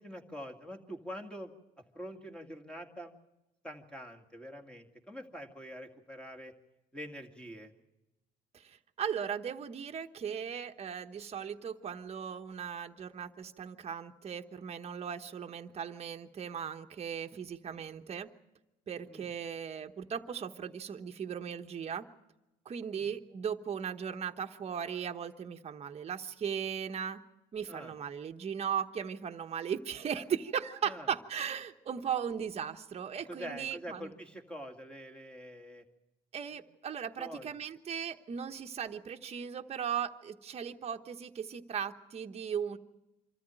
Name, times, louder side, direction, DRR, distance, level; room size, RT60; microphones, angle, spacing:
voice 1, 0.0-1.5 1.9-3.1 3.6-6.5 6.9-7.7 19.1-19.3 22.9-23.0 27.7-27.9 30.8-31.1 33.3-35.8 37.2-37.5, equal, 5° left, 4 dB, 2.2 m, -45 dB
voice 2, 8.5-18.3 18.9-22.0 22.6-27.2 27.5-34.1 36.3-42.8, right 8 dB, 40° right, 5 dB, 1.1 m, -37 dB
25.5 x 14.0 x 9.1 m, 0.98 s
cardioid pair, 110°, 17 cm